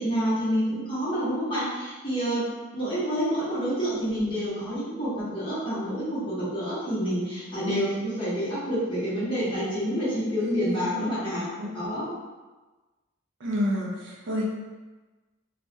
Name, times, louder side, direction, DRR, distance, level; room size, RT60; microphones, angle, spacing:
voice 1, 0.0-2.5 2.7-11.5 11.7-12.1, equal, 25° left, -10 dB, 0.8 m, -28 dB
voice 2, 10.4-11.0 11.6-11.7 13.4-14.4, equal, 55° right, -2 dB, 0.4 m, -29 dB
2.3 x 2.0 x 2.6 m, 1.2 s
head